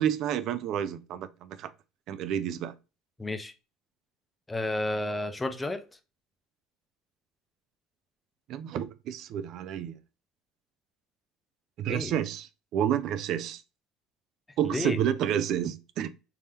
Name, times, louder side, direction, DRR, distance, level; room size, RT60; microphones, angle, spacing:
voice 1, 0.0-1.7 2.1-2.7 8.5-10.0 11.8-13.6 14.6-16.1, right 10 dB, 60° right, 0.4 m, -30 dB
voice 2, 3.2-3.5 4.5-5.8 11.9-12.1 14.6-15.0, left 2 dB, 15° left, 0.6 m, -31 dB
3.5 x 2.8 x 3.3 m
supercardioid pair, 115°, 0 cm